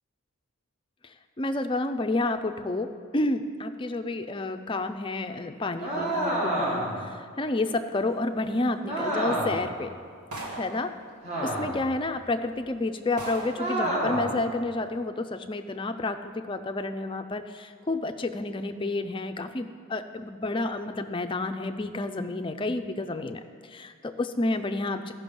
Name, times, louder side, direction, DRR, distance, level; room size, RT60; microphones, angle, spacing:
voice 1, 1.0-9.9 10.6-10.9 11.4-25.1, left 2 dB, 20° left, 8 dB, 0.4 m, -30 dB
sound 1, 5.8-7.0 8.8-9.7 11.2-11.9 13.6-14.4, right 1 dB, 30° right, 2.1 m, -28 dB
sound 2, 10.3-10.9 11.9-12.0 12.6-12.7 13.2-13.7, right 1 dB, 90° right, 1.7 m, -37 dB
13.5 x 5.8 x 5.3 m, 2.2 s
head